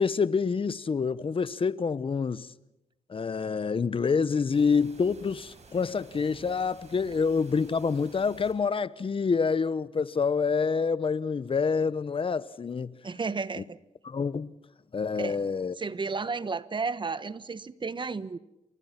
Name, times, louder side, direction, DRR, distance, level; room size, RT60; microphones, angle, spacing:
voice 1, 0.0-2.5 3.1-12.9 13.6-13.7 14.0-14.5 14.9-15.7, left 5 dB, 45° left, 1.1 m, -27 dB
sound 1, 4.5-8.5, right 3 dB, 60° right, 7.5 m, -53 dB
voice 2, 13.0-13.8 15.1-15.4 15.8-18.4, right 4 dB, 40° right, 1.3 m, -33 dB
28.5 x 24.0 x 6.0 m
cardioid pair, 65°, 13 cm